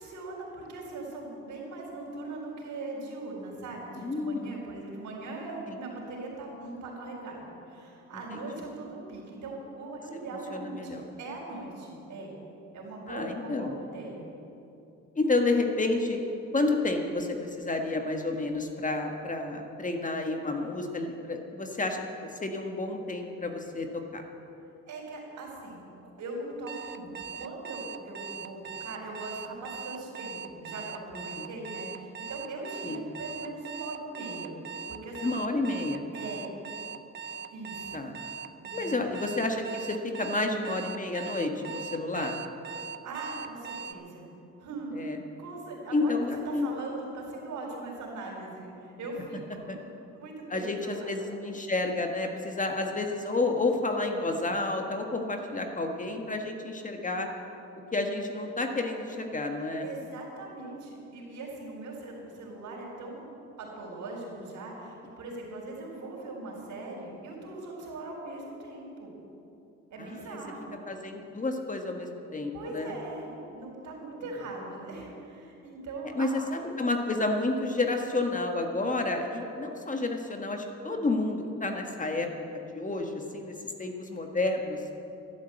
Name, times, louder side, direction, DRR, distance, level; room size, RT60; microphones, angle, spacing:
voice 1, 0.0-12.4 12.7-14.3 24.9-25.8 26.2-34.6 34.9-35.4 36.1-36.5 37.5-38.0 38.6-39.0 43.0-44.3 44.6-45.0 45.4-46.2 46.5-49.6 50.1-51.1 59.6-63.3 63.6-69.1 69.9-70.8 72.5-76.4, right 2 dB, 75° right, -1 dB, 4.4 m, -40 dB
voice 2, 4.0-4.5 5.7-5.8 10.5-11.0 13.1-13.8 15.1-16.2 16.5-24.2 31.1-31.5 32.8-33.0 35.2-36.0 37.9-38.1 38.7-42.4 44.9-45.2 45.9-46.7 49.7-49.8 50.5-57.3 57.9-59.8 70.0-70.4 70.9-72.9 76.1-83.5 83.8-84.8, left 2 dB, 25° left, 3 dB, 1.6 m, -30 dB
Alarm, 26.7-43.9, right 7 dB, 35° right, 0.6 m, -40 dB
11.5 x 11.5 x 8.0 m, 2.8 s
cardioid pair, 90°, 30 cm